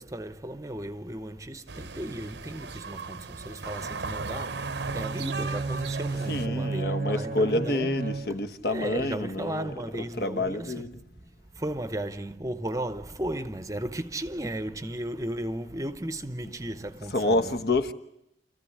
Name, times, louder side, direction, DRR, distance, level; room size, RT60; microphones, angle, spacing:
voice 1, 0.0-8.0 8.7-17.6, right 1 dB, 15° right, 0.8 m, -35 dB
sound 1, 1.7-6.5, right 4 dB, 70° right, 0.9 m, -37 dB
Bowed string instrument, 4.5-8.7, right 3 dB, 45° right, 0.8 m, -33 dB
voice 2, 6.3-11.0 17.0-17.9, left 2 dB, 55° left, 1.3 m, -28 dB
28.5 x 14.5 x 9.9 m
head